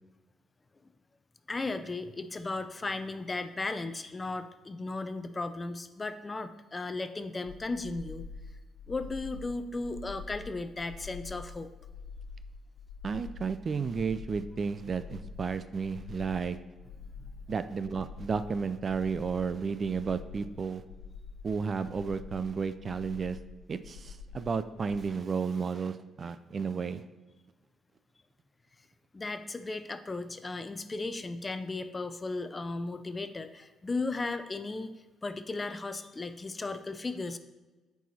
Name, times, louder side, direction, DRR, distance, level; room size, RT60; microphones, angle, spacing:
voice 1, 1.5-8.3 8.9-11.7 17.2-17.3 29.1-34.9 35.2-37.4, left 3 dB, 25° left, 10 dB, 0.5 m, -36 dB
sound 1, 7.4-25.0, left 4 dB, 85° left, 0.3 m, -46 dB
voice 2, 13.0-16.6 17.5-20.8 21.4-23.4 23.7-27.1, right 5 dB, 40° right, 12 dB, 0.4 m, -32 dB
8.9 x 4.7 x 4.2 m, 1.2 s
cardioid pair, 90°, 0 cm